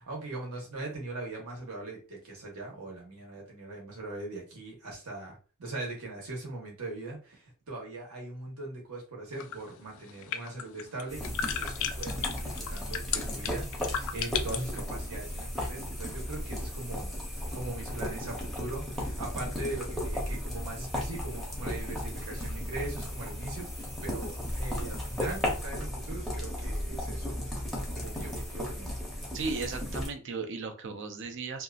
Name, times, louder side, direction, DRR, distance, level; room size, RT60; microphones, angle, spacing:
voice 1, 0.0-11.7 12.0-17.1 17.5-27.4 27.9-29.0, right 2 dB, 85° right, -1 dB, 1.0 m, -40 dB
sound 1, 9.3-14.8, left 8 dB, 65° left, 0.3 m, -35 dB
sound 2, 11.1-30.1, left 1 dB, ahead, 0.6 m, -35 dB
voice 2, 29.3-31.6, right 4 dB, 60° right, 6 dB, 0.5 m, -36 dB
2.7 x 2.4 x 2.3 m, 0.36 s
head